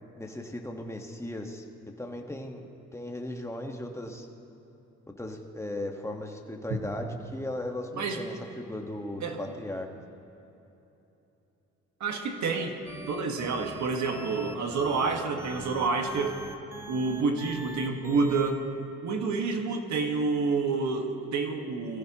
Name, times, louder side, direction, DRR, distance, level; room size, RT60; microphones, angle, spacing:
voice 1, 0.2-1.6 2.0-2.7 2.9-4.3 5.1-9.9, left 1 dB, 10° left, 3 dB, 1.5 m, -37 dB
voice 2, 9.2-9.5 12.0-12.7 13.1-16.4 16.9-18.7 19.0-22.0, right 4 dB, 70° right, 4 dB, 1.7 m, -28 dB
sound 1, 12.9-18.5, equal, 10° right, 1.1 m, -42 dB
22.0 x 15.0 x 3.0 m, 3.0 s
cardioid pair, 90°, 30 cm